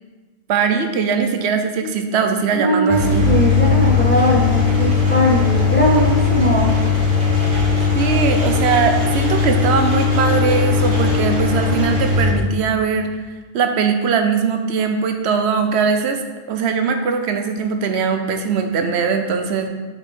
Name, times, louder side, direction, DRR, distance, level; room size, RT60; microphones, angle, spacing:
voice 1, 0.5-3.3 7.9-13.1 13.5-16.2 16.5-19.7, right 6 dB, 90° right, 6 dB, 0.9 m, -20 dB
voice 2, 2.5-6.8, equal, 10° left, -3 dB, 1.0 m, -19 dB
Engine, 2.9-12.3, left 5 dB, 40° right, 1.5 m, -18 dB
6.2 x 5.2 x 4.2 m, 1.3 s
omnidirectional pair, 1.1 m